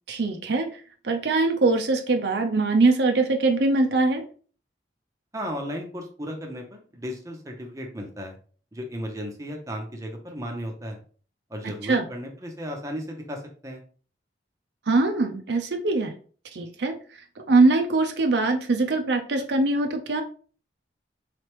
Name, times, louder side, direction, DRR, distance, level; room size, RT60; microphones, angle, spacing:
voice 1, 0.1-0.7 1.0-4.2 11.8-12.0 14.9-16.1 16.5-16.9 17.5-20.2, right 3 dB, 65° right, 4 dB, 0.6 m, -22 dB
voice 2, 5.3-8.4 8.7-11.0 11.5-13.8, equal, 15° right, 1 dB, 0.7 m, -35 dB
4.1 x 3.2 x 3.0 m, 0.41 s
head